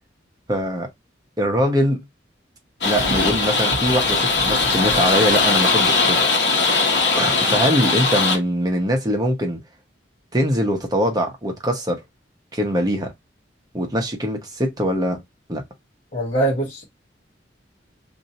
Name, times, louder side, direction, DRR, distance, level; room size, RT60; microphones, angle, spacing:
voice 1, 0.5-0.9 1.4-2.0 2.8-6.2 7.2-9.6 10.3-12.0 12.5-13.1 13.7-15.2 15.5-15.6, equal, 20° right, 0.8 m, -22 dB
sound 1, 2.8-8.4, left 3 dB, 65° left, 1.1 m, -19 dB
voice 2, 16.1-16.8, right 2 dB, 40° left, 1.1 m, -22 dB
2.6 x 2.6 x 4.1 m
head